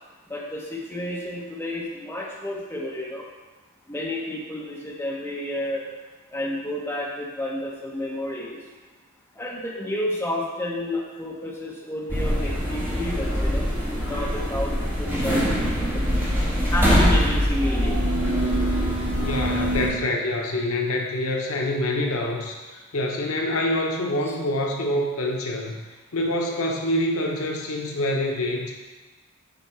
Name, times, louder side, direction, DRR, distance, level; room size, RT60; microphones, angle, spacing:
voice 1, 0.3-3.3 3.9-5.8 6.3-8.6 9.3-13.7 14.0-16.1 16.7-18.0 24.3-24.4, left 1 dB, 10° left, -4 dB, 1.2 m, -30 dB
sound 1, 12.1-19.9, equal, 10° right, 2.0 m, -23 dB
voice 2, 19.2-25.8 26.1-28.7, left 1 dB, 70° left, 1 dB, 0.9 m, -26 dB
8.3 x 4.4 x 4.4 m, 1.2 s
head